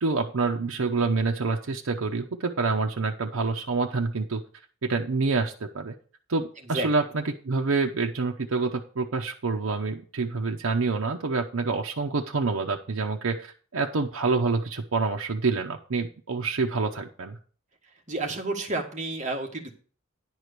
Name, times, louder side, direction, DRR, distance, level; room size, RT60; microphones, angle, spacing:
voice 1, 0.0-4.4 4.8-5.9 6.3-17.4, right 4 dB, 90° right, 2 dB, 0.7 m, -27 dB
voice 2, 18.1-19.7, right 2 dB, 35° right, 2 dB, 1.7 m, -30 dB
10.5 x 4.7 x 6.7 m, 0.41 s
head